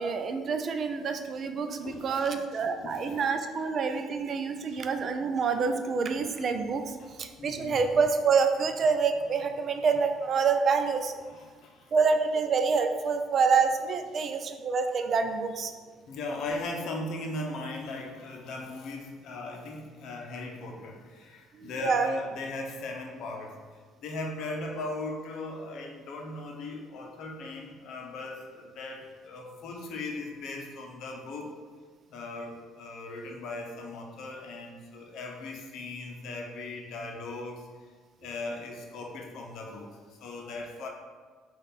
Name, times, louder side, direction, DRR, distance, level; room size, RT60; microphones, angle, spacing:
voice 1, 0.0-6.8 7.2-11.1 11.9-15.7 21.6-22.1, right 5 dB, 50° right, 7 dB, 0.4 m, -27 dB
voice 2, 1.8-3.2 4.7-4.8 7.0-7.9 11.2-11.9 14.1-14.3 16.1-23.6 24.0-31.5 32.1-37.7 38.2-40.9, left 2 dB, 70° left, 1 dB, 0.7 m, -38 dB
5.4 x 2.4 x 4.0 m, 1.5 s
supercardioid pair, 85°, 0 cm